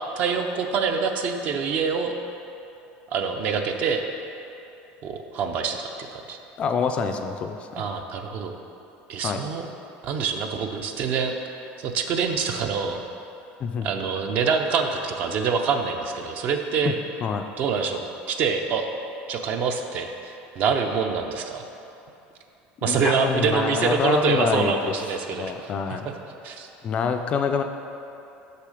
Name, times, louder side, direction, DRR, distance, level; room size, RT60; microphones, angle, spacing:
voice 1, 0.2-2.2 3.1-4.0 5.0-6.4 7.7-8.5 9.1-9.7 10.0-13.0 13.8-16.9 17.6-18.0 18.3-18.9 19.3-21.6 22.8-26.0 26.4-26.7, right 5 dB, 40° right, 5 dB, 0.5 m, -26 dB
voice 2, 6.6-7.8 9.2-9.4 13.6-13.9 16.8-16.9 17.2-17.4 22.9-24.9 25.3-26.1 26.8-27.6, left 6 dB, 30° left, 6 dB, 0.3 m, -26 dB
6.7 x 6.3 x 4.9 m, 2.8 s
cardioid pair, 170°, 4 cm